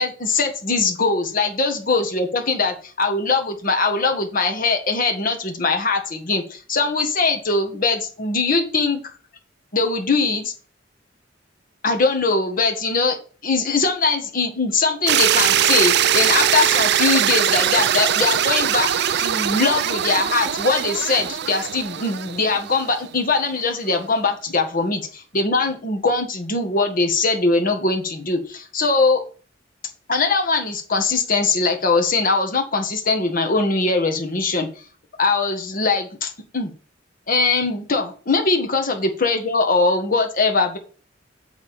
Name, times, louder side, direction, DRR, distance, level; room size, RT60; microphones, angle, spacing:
voice 1, 0.0-9.0 9.7-10.5 11.8-13.2 13.4-18.9 19.2-29.2 30.1-34.7 35.2-36.7 37.3-40.8, left 3 dB, 50° left, 4 dB, 1.6 m, -21 dB
sound 1, 15.1-23.1, right 10 dB, 60° right, 0.5 m, -21 dB
8.0 x 4.3 x 6.7 m, 0.40 s
head